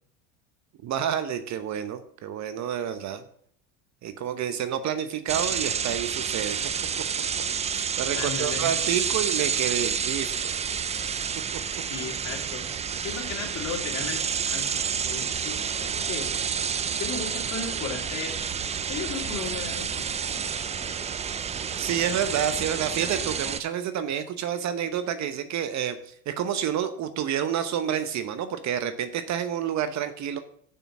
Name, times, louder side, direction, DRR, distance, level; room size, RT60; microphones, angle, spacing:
voice 1, 0.8-3.2 4.0-6.6 7.7-10.5 21.8-30.4, right 9 dB, 45° right, 10 dB, 1.0 m, -29 dB
sound 1, 5.3-23.6, right 7 dB, 15° right, 0.4 m, -29 dB
voice 2, 8.1-8.7 11.9-12.8 13.0-16.3 17.0-18.4 18.9-20.4 20.8-21.1, left 6 dB, 40° left, 1 dB, 2.7 m, -36 dB
6.8 x 6.0 x 7.3 m, 0.63 s
hypercardioid pair, 85°, 40 cm